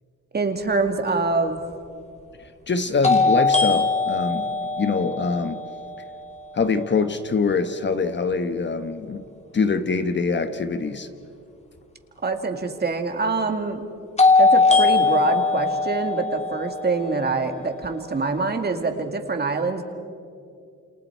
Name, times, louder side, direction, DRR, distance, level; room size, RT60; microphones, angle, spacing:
voice 1, 0.3-1.6 12.2-13.8 14.4-19.8, right 3 dB, 35° right, 5 dB, 2.2 m, -25 dB
sound 1, 1.1-1.2 3.0-6.9 14.2-18.2, left 3 dB, 20° left, 2.3 m, -21 dB
voice 2, 2.4-5.6 6.5-9.2 9.5-11.1, left 4 dB, 35° left, 9 dB, 1.2 m, -24 dB
28.5 x 27.0 x 4.6 m, 2.5 s
cardioid pair, 90°, 30 cm